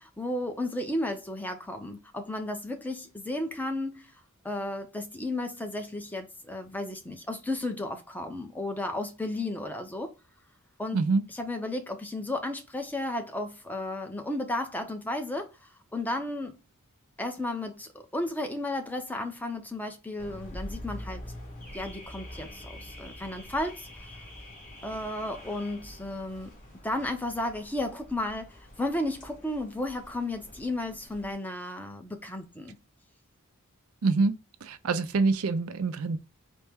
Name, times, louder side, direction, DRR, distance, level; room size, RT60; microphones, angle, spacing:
voice 1, 0.0-4.1 4.4-10.1 10.8-11.0 11.3-16.5 17.2-21.2 21.7-24.2 24.8-26.5 26.8-32.8, left 1 dB, 10° left, 0.6 m, -33 dB
voice 2, 10.9-11.2 34.0-34.3 34.6-36.2, right 3 dB, 75° right, 0.5 m, -25 dB
Car / Alarm, 20.2-31.3, left 1 dB, 40° left, 1.5 m, -45 dB
4.3 x 2.1 x 3.5 m
head